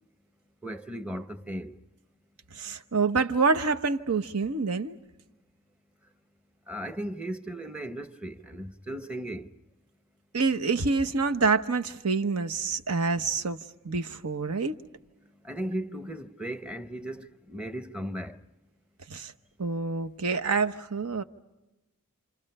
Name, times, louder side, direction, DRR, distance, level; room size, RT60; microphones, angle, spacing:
voice 1, 0.6-1.8 6.7-9.5 15.4-18.4, right 1 dB, 5° right, 0.8 m, -36 dB
voice 2, 2.5-5.0 10.3-13.6 13.8-14.7 19.1-19.3 19.6-21.2, right 4 dB, 80° right, 1.0 m, -27 dB
29.5 x 27.5 x 5.5 m
head